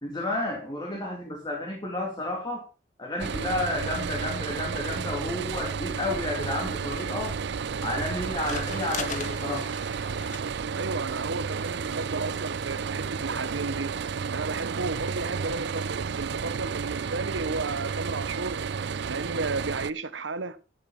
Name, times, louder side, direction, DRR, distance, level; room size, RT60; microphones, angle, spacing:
voice 1, 0.0-2.6 3.0-7.4 7.8-9.7, left 1 dB, 25° left, 2.8 m, -31 dB
sound 1, 3.2-19.9, right 6 dB, 65° right, 0.5 m, -32 dB
sound 2, 6.8-13.7, left 5 dB, 45° left, 1.6 m, -43 dB
voice 2, 10.7-18.6 19.1-20.6, right 3 dB, 85° right, 1.1 m, -33 dB
12.5 x 7.9 x 5.4 m
head